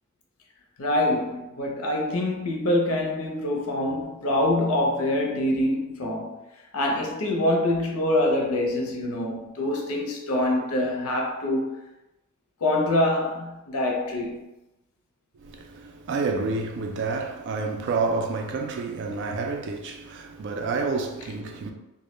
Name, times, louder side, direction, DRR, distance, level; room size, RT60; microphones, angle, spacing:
voice 1, 0.8-6.4 6.7-11.7 12.6-14.4 21.2-21.3, left 1 dB, 75° left, 0.5 m, -25 dB
voice 2, 15.4-21.7, right 4 dB, 55° right, 0.3 m, -29 dB
2.2 x 2.0 x 3.0 m
head